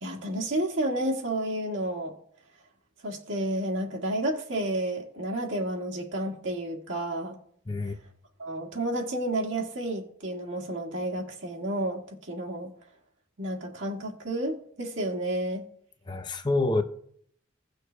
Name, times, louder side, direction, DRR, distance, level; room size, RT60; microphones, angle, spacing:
voice 1, 0.0-2.1 3.0-7.4 8.4-12.7 13.4-15.6, right 1 dB, 65° right, 1.7 m, -31 dB
voice 2, 7.7-8.0 16.1-16.8, left 2 dB, 20° left, 0.6 m, -27 dB
17.5 x 6.4 x 2.2 m
head